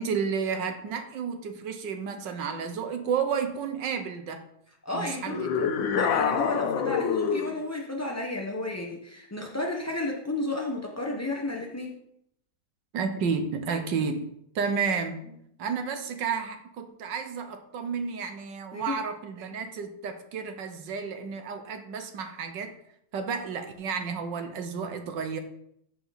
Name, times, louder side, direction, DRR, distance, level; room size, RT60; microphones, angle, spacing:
voice 1, 0.0-4.4 4.9-5.8 12.9-14.2 14.5-15.2 15.6-22.8 23.1-25.4, right 6 dB, 75° right, 7 dB, 1.6 m, -31 dB
voice 2, 4.8-5.5 6.0-12.0 18.7-18.9, left 2 dB, 25° left, -1 dB, 0.3 m, -32 dB
sound 1, 5.3-7.6, left 6 dB, 85° left, 1.5 m, -26 dB
14.0 x 5.0 x 4.1 m, 0.74 s
omnidirectional pair, 2.0 m